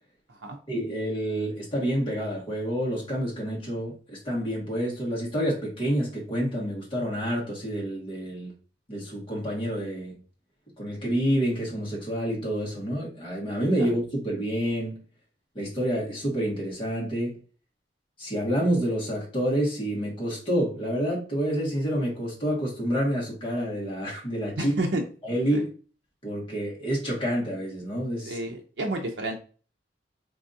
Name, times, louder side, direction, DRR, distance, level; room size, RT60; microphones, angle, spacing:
voice 1, 0.7-8.5 8.9-10.2 10.8-15.0 15.5-17.4 18.2-24.7 25.2-25.7 26.2-28.4, equal, 30° left, 1.7 m, -28 dB
voice 2, 24.6-25.0 25.5-25.6 28.3-29.4, right 2 dB, 75° right, 0.6 m, -30 dB
3.8 x 3.3 x 2.7 m
head